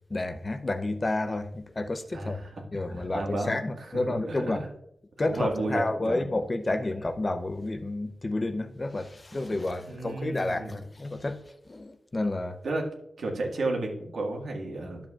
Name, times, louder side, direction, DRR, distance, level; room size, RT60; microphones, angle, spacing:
voice 1, 0.1-4.7 5.2-11.4 11.7-12.6, left 2 dB, 30° left, 0.6 m, -30 dB
voice 2, 2.1-2.6 2.9-4.7 5.3-6.2 9.3-9.4 9.8-10.8 12.6-12.9 13.2-15.1, right 2 dB, 85° right, 1.7 m, -33 dB
12.0 x 7.5 x 2.4 m
wide cardioid pair, 140°, 0 cm